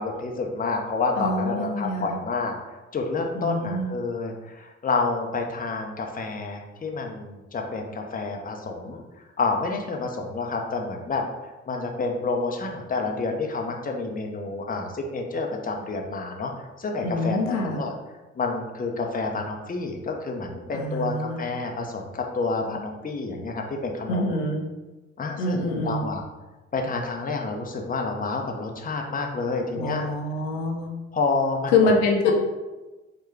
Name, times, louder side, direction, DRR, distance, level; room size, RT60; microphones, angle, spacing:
voice 1, 0.0-2.5 2.9-11.2 11.7-17.9 18.4-24.4 25.2-26.2 26.7-30.0 31.1-31.9 32.2-32.3, left 3 dB, 25° left, 2 dB, 0.8 m, -29 dB
voice 2, 1.2-2.2 3.3-3.9 17.0-17.8 20.7-21.4 24.1-24.6 25.4-26.0 29.7-30.9 31.7-32.3, left 3 dB, 75° left, 1 dB, 0.8 m, -25 dB
4.6 x 2.3 x 4.6 m, 1.1 s
hypercardioid pair, 50°, 35 cm